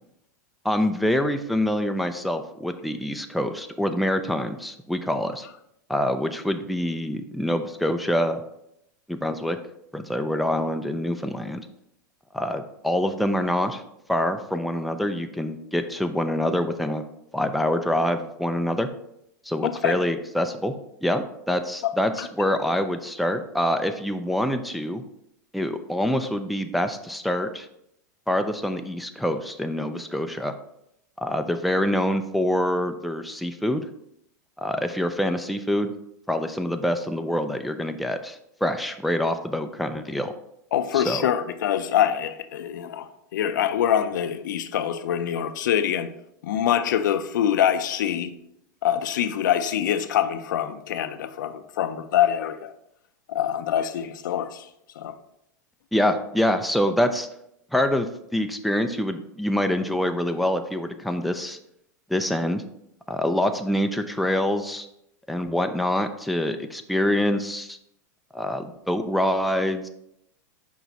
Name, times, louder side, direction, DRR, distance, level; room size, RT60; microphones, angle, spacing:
voice 1, 0.6-5.5 5.9-8.4 9.1-9.6 9.9-11.6 12.3-13.8 14.1-17.0 17.3-18.9 19.4-20.7 21.0-25.0 25.5-27.7 28.3-30.5 31.2-33.9 34.6-35.9 36.3-40.3 40.9-41.2 55.9-57.3 57.7-61.6 62.1-62.6 63.1-64.9 65.3-67.8 68.3-69.9, left 1 dB, ahead, 0.4 m, -25 dB
voice 2, 19.6-20.0 22.2-22.3 40.7-46.1 46.4-48.3 48.8-52.7 53.3-54.7 55.0-55.1, left 10 dB, 75° left, 0.6 m, -24 dB
6.1 x 4.7 x 4.0 m
hypercardioid pair, 115°, 10 cm